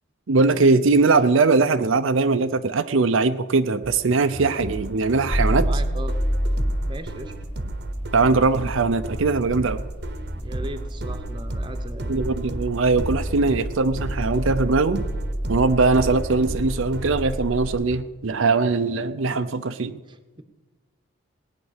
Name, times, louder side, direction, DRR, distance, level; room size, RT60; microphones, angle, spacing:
voice 1, 0.3-5.7 8.1-9.8 12.1-15.0 15.5-20.0, right 3 dB, 70° right, 9 dB, 0.6 m, -21 dB
sound 1, 3.8-18.0, right 2 dB, 50° right, 1.0 m, -34 dB
sound 2, 5.3-17.8, equal, 25° left, 2.0 m, -29 dB
voice 2, 5.5-6.2 6.8-7.3 10.3-12.1 20.1-20.4, right 1 dB, 20° right, 8 dB, 1.0 m, -37 dB
18.5 x 9.2 x 6.5 m, 1.2 s
head